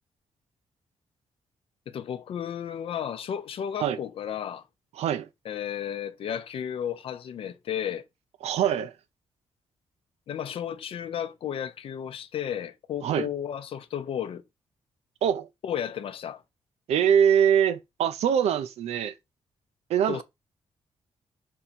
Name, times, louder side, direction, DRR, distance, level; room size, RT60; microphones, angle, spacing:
voice 1, 1.9-4.6 5.4-8.0 10.3-14.4 15.6-16.4 20.1-20.2, left 9 dB, 60° left, 0.6 m, -33 dB
voice 2, 5.0-5.3 8.4-8.9 13.0-13.3 15.2-15.5 16.9-19.1 19.9-20.2, right 8 dB, 90° right, 0.5 m, -23 dB
4.0 x 3.0 x 4.2 m
cardioid pair, 135°, 11 cm